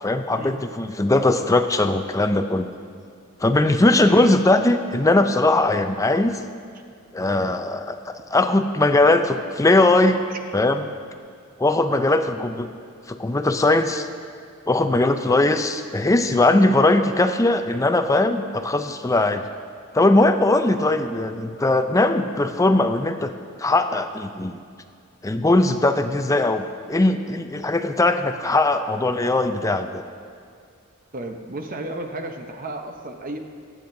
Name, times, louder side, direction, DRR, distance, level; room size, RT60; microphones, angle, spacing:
voice 1, 0.0-2.7 3.4-6.4 7.1-10.2 10.5-10.9 11.6-12.7 13.1-14.1 14.7-19.4 19.9-23.3 23.6-24.6 25.2-30.0, left 2 dB, 15° left, 8 dB, 0.5 m, -20 dB
voice 2, 4.0-4.4 10.3-10.4 31.1-33.4, right 2 dB, 40° right, 4 dB, 0.8 m, -33 dB
22.5 x 8.8 x 2.7 m, 2.2 s
head